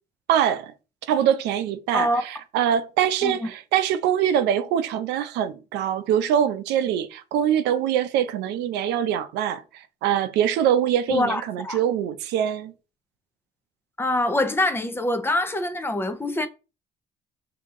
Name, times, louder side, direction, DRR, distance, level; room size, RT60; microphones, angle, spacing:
voice 1, 0.3-0.7 1.1-9.6 10.0-12.7, right 9 dB, 85° right, 0.6 m, -23 dB
voice 2, 1.9-2.2 3.2-3.5 11.1-11.8 14.0-16.5, left 1 dB, 15° left, 0.5 m, -24 dB
5.2 x 2.8 x 3.6 m
cardioid pair, 110°, 17 cm